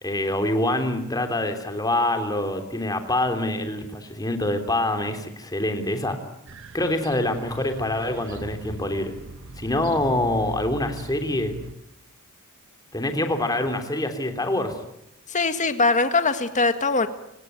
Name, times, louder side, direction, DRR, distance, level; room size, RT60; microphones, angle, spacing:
voice 1, 0.0-6.2 6.7-9.1 9.6-11.5 12.9-14.7, left 1 dB, 15° left, 6 dB, 3.2 m, -25 dB
sound 1, 6.5-11.7, right 2 dB, 60° right, 1.2 m, -40 dB
voice 2, 15.3-17.1, left 3 dB, 35° left, 9 dB, 1.9 m, -21 dB
28.5 x 18.5 x 9.4 m, 0.81 s
head